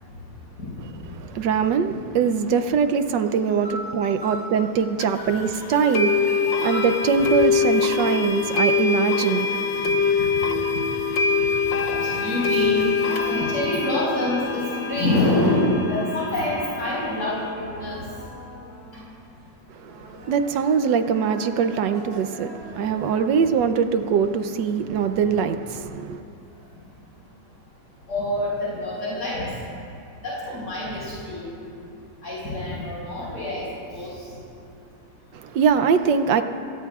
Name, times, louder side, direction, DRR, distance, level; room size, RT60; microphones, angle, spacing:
voice 1, 1.1-10.1 19.7-26.2 35.3-36.4, right 6 dB, 70° right, 1.2 m, -23 dB
voice 2, 3.6-4.3 5.0-5.3 5.7-6.0 6.3-6.8 11.4-11.5 11.8-18.0 28.1-29.4 30.2-31.5 32.2-33.6 33.9-34.1, left 1 dB, 50° left, 5.2 m, -26 dB
sound 1, 5.0-5.1 5.9-17.5, left 5 dB, 70° left, 1.6 m, -24 dB
sound 2, 13.0-19.3 19.9-23.8, right 1 dB, 85° right, 3.7 m, -42 dB
30.0 x 17.5 x 2.4 m
omnidirectional pair, 2.2 m